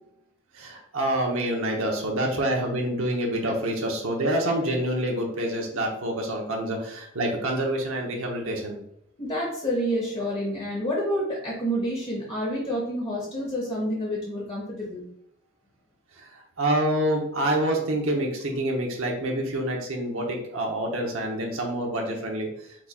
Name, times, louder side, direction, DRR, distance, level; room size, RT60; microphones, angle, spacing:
voice 1, 0.5-8.8 16.2-16.3 16.6-22.5, right 1 dB, 80° right, 0 dB, 0.9 m, -27 dB
voice 2, 9.2-15.0, equal, 25° left, -5 dB, 0.9 m, -28 dB
4.6 x 4.1 x 2.3 m, 0.73 s
head